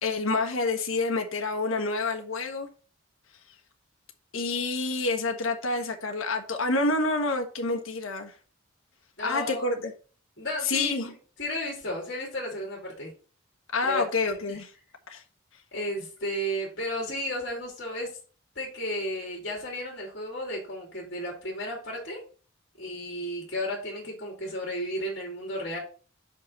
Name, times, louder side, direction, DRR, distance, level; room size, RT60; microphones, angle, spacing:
voice 1, 0.0-2.7 4.3-8.3 9.2-9.9 10.6-11.1 13.7-14.7 15.1-15.2, left 3 dB, 80° left, 1.4 m, -28 dB
voice 2, 9.2-9.7 10.4-11.0 11.4-13.1 13.8-14.0 14.5-14.6 15.7-18.1 18.5-22.2 22.8-25.8, equal, 55° left, 2.6 m, -33 dB
6.0 x 5.4 x 5.5 m
head